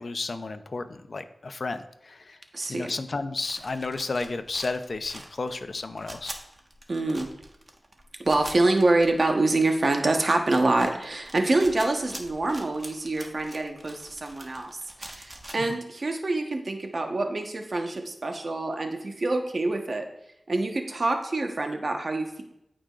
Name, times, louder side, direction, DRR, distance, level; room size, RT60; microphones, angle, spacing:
voice 1, 0.0-2.4 2.7-6.4, left 3 dB, 65° left, 10 dB, 0.6 m, -32 dB
voice 2, 2.5-2.9 6.9-7.3 8.2-20.1 20.5-22.4, right 2 dB, 60° right, 3 dB, 1.1 m, -26 dB
sound 1, 3.3-9.6 10.0-10.1 10.4-15.5, right 1 dB, 35° right, 1.3 m, -44 dB
13.5 x 5.0 x 2.5 m, 0.81 s
cardioid pair, 50°, 0 cm